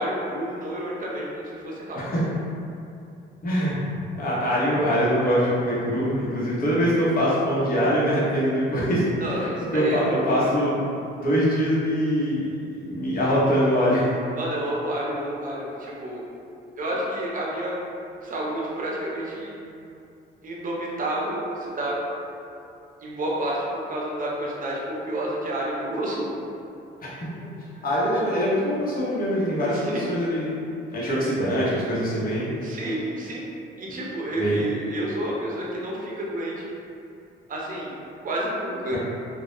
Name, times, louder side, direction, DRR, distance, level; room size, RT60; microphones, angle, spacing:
voice 1, 0.0-2.0 9.2-10.4 14.4-16.2 16.8-17.8 18.2-19.8 20.4-22.0 23.0-26.4 29.6-30.1 32.6-33.4 33.8-36.7 37.5-38.0 38.2-39.0, right 1 dB, 45° right, -4 dB, 0.6 m, -30 dB
voice 2, 3.4-3.7 4.1-9.1 9.7-10.8 11.1-12.5 12.8-14.1 27.0-27.1 27.8-30.5 30.9-32.5 34.4-34.6 38.9-39.0, equal, 45° left, -8 dB, 0.9 m, -23 dB
2.2 x 2.0 x 3.0 m, 2.6 s
cardioid pair, 90°, 20 cm